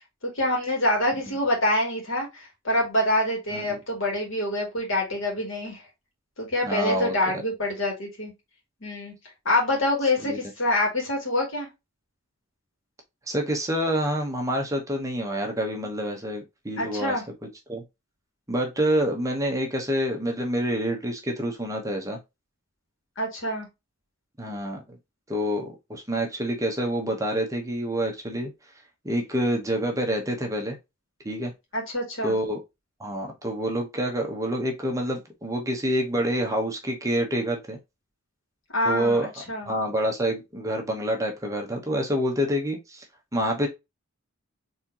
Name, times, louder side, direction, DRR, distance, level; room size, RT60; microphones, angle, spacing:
voice 1, 0.2-5.9 6.4-8.3 8.8-9.1 9.4-11.7 16.8-17.2 23.2-23.7 31.7-32.4 38.7-39.2 39.5-39.7, left 1 dB, 65° left, 2.4 m, -26 dB
voice 2, 6.6-7.1 10.2-10.4 13.3-17.2 17.7-17.8 18.5-22.2 24.4-25.0 25.3-28.5 29.0-30.8 31.2-31.5 32.2-32.6 33.0-37.8 38.8-39.3 39.7-43.0 43.3-43.7, equal, 15° right, 0.9 m, -27 dB
4.3 x 3.6 x 2.8 m
head